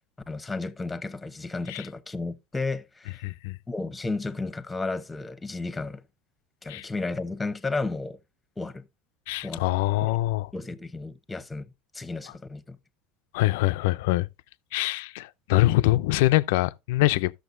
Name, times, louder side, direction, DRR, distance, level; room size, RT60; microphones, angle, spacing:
voice 1, 0.3-3.2 3.7-6.0 6.6-8.2 8.6-8.8 9.4-9.6 10.0-10.1 10.5-11.7 11.9-12.8, left 3 dB, 15° left, 0.9 m, -33 dB
voice 2, 3.2-3.6 6.7-6.8 9.3-10.5 13.3-14.3 14.7-17.3, left 18 dB, 80° left, 0.4 m, -24 dB
14.0 x 6.5 x 2.6 m
supercardioid pair, 110°, 0 cm